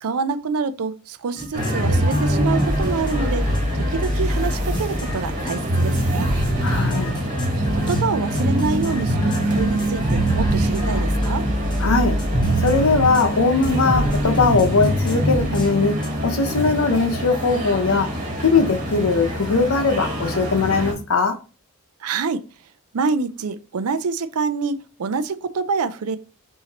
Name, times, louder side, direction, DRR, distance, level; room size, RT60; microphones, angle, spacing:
voice 1, 0.0-6.3 7.7-11.5 22.0-22.4 22.9-26.2, right 4 dB, 90° right, 0.5 m, -26 dB
sound 1, 1.4-13.3 13.6-15.7 16.0-16.1, equal, 20° left, 0.8 m, -27 dB
sound 2, 1.5-20.9, right 1 dB, 40° right, 1.5 m, -24 dB
voice 2, 6.6-7.1 11.8-12.2 12.6-15.9 16.2-18.1 18.4-21.3, left 4 dB, 75° left, 0.8 m, -20 dB
5.7 x 2.8 x 2.9 m
head